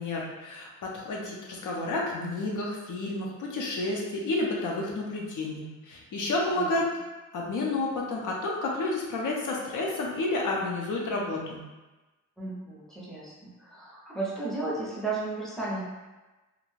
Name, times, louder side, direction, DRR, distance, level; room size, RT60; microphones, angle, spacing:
voice 1, 0.0-6.9 7.3-11.6, left 2 dB, 70° left, -2 dB, 0.6 m, -30 dB
voice 2, 12.4-15.8, right 3 dB, ahead, -7 dB, 0.6 m, -34 dB
2.4 x 2.2 x 3.1 m, 1.1 s
wide cardioid pair, 155°, 32 cm